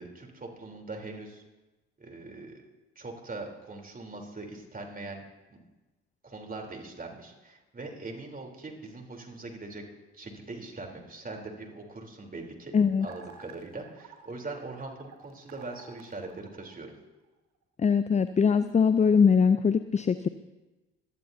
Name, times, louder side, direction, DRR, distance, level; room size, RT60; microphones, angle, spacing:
voice 1, 0.0-1.4 2.0-2.6 3.0-5.2 5.5-5.6 6.2-9.8 10.1-12.7 13.0-16.9, right 3 dB, 30° right, 2 dB, 3.7 m, -41 dB
voice 2, 12.7-13.1 17.8-20.3, left 6 dB, 20° left, 12 dB, 0.6 m, -22 dB
sound 1, 13.0-17.3, right 6 dB, 60° right, 1.6 m, -52 dB
24.0 x 17.5 x 2.8 m, 1.1 s
hypercardioid pair, 50°, 31 cm